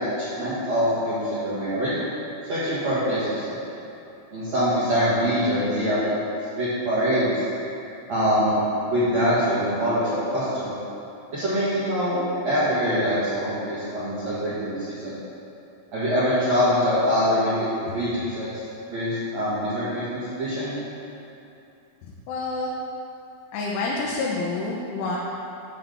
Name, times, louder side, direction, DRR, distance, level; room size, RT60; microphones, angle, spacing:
voice 1, 0.0-1.9 2.5-3.6 4.3-6.0 6.6-7.3 8.1-8.6 8.8-10.7 11.3-12.2 12.4-15.2 15.9-18.5 18.9-20.7, equal, 55° right, -13 dB, 2.1 m, -24 dB
voice 2, 22.0-22.7 23.5-25.2, left 3 dB, 85° left, -4 dB, 3.2 m, -28 dB
10.0 x 3.6 x 6.9 m, 2.8 s
omnidirectional pair, 5.3 m